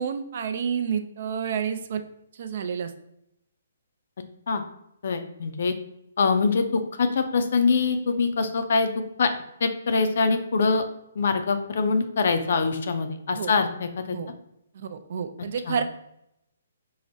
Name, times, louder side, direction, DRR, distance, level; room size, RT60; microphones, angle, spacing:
voice 1, 0.0-2.0 2.3-2.9 13.3-13.5 14.1-14.3 14.7-15.8, right 7 dB, 55° right, 8 dB, 0.4 m, -29 dB
voice 2, 5.0-5.8 6.2-8.9 9.2-9.3 9.6-10.8 11.2-14.2 15.7-15.8, left 4 dB, 65° left, 8 dB, 0.4 m, -24 dB
4.7 x 2.0 x 2.6 m, 0.78 s
hypercardioid pair, 145°, 0 cm